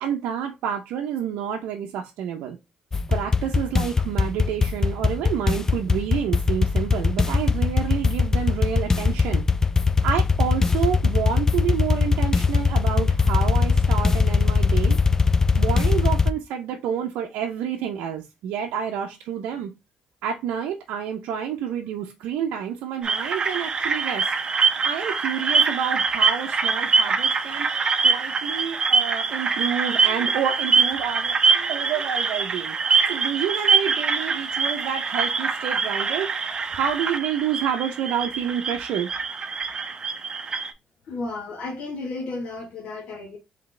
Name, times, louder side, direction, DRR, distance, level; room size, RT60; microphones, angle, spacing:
voice 1, 0.0-2.6 3.1-9.4 10.0-15.0 15.6-19.7 20.2-24.3 24.8-36.3 36.7-39.1, right 8 dB, 85° right, 0.6 m, -29 dB
sound 1, 2.9-16.3, left 4 dB, 20° left, 0.4 m, -21 dB
sound 2, 23.0-40.7, right 4 dB, 40° right, 0.7 m, -24 dB
voice 2, 41.0-43.4, left 3 dB, 70° left, 1.3 m, -33 dB
3.9 x 3.4 x 3.2 m
cardioid pair, 85°, 2 cm